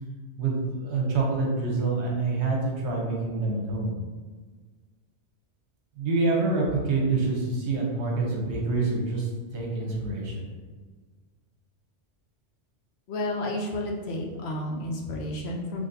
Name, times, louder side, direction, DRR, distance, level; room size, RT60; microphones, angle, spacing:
voice 1, 0.4-3.9 6.0-9.3 9.5-10.4, right 3 dB, 70° right, -1 dB, 1.0 m, -26 dB
voice 2, 13.1-15.9, left 1 dB, 65° left, 0 dB, 0.8 m, -31 dB
3.9 x 3.2 x 2.6 m, 1.4 s
omnidirectional pair, 1.2 m